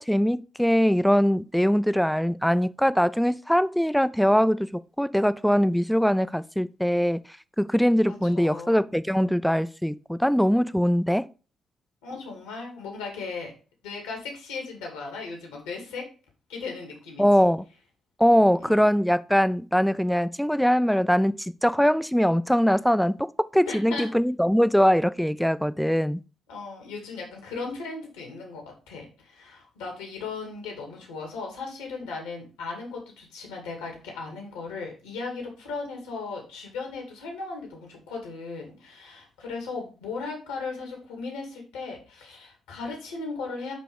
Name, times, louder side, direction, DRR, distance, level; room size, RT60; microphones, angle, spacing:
voice 1, 0.0-7.2 7.6-11.3 17.2-17.6 18.2-26.2, equal, ahead, 0.4 m, -22 dB
voice 2, 8.1-8.7 12.0-13.5 13.8-16.0 16.5-17.5 18.6-18.8 23.6-24.1 26.5-43.7, left 4 dB, 85° left, 2.3 m, -37 dB
9.0 x 3.0 x 5.2 m
hypercardioid pair, 45°, 0 cm